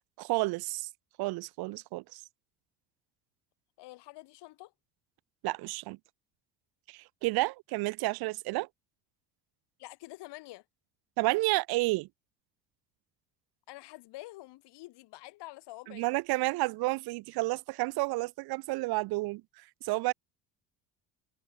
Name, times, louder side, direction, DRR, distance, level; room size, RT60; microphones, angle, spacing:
voice 1, 0.2-0.9 1.2-2.2 5.4-6.0 6.9-8.7 11.2-12.1 15.9-19.4 19.8-20.1, right 22 dB, 60° right, 0.6 m, -31 dB
voice 2, 3.8-4.7 9.8-10.6 13.7-16.1, left 19 dB, 70° left, 2.8 m, -47 dB
supercardioid pair, 85°, 43 cm